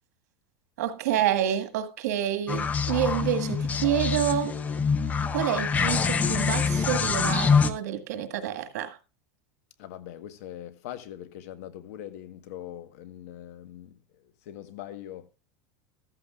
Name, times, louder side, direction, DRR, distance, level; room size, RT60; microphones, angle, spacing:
voice 1, 0.8-4.5 5.3-9.0, right 10 dB, 85° right, 1.8 m, -28 dB
sound 1, 2.5-7.7, left 5 dB, 20° left, 0.7 m, -25 dB
voice 2, 9.8-15.3, left 11 dB, 65° left, 1.3 m, -42 dB
14.0 x 13.5 x 2.5 m
supercardioid pair, 160°, 9 cm